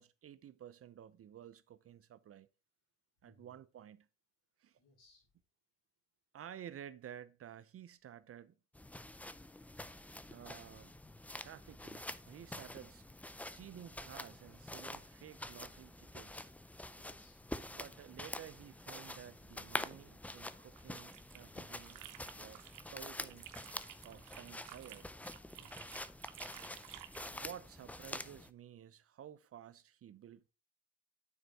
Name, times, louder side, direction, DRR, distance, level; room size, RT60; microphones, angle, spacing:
voice 1, 0.0-2.5 3.2-4.1 4.6-4.8 6.3-8.5 10.3-10.9 11.4-13.1 13.6-16.5 17.7-22.0 22.3-23.6 24.0-25.1 27.3-30.5, right 10 dB, 50° right, 0.6 m, -53 dB
voice 2, 3.2-3.6 4.8-5.3 12.8-12.9 17.0-17.5 19.0-19.4 25.5-25.9, left 2 dB, 85° left, 5.1 m, -66 dB
sound 1, 8.7-28.5, left 1 dB, 5° left, 0.4 m, -47 dB
sound 2, 20.7-22.9 23.2-27.4, right 13 dB, 90° right, 0.9 m, -54 dB
9.5 x 4.5 x 4.0 m
cardioid pair, 90°, 30 cm